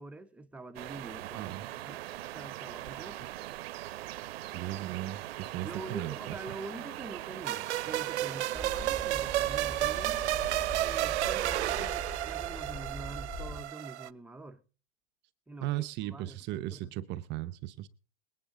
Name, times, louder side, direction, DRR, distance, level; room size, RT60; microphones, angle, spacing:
voice 1, 0.0-2.0 2.3-3.3 5.6-10.2 10.8-14.6 15.5-16.9, right 2 dB, 5° right, 0.8 m, -45 dB
sound 1, 0.8-11.9, right 15 dB, 60° right, 0.9 m, -41 dB
voice 2, 1.3-1.7 4.5-6.4 15.6-17.9, right 15 dB, 30° right, 0.8 m, -37 dB
sound 2, 7.4-14.1, right 14 dB, 80° right, 0.6 m, -32 dB
sound 3, 8.5-13.6, equal, 15° left, 2.8 m, -42 dB
20.5 x 10.0 x 3.8 m
hypercardioid pair, 130°, 34 cm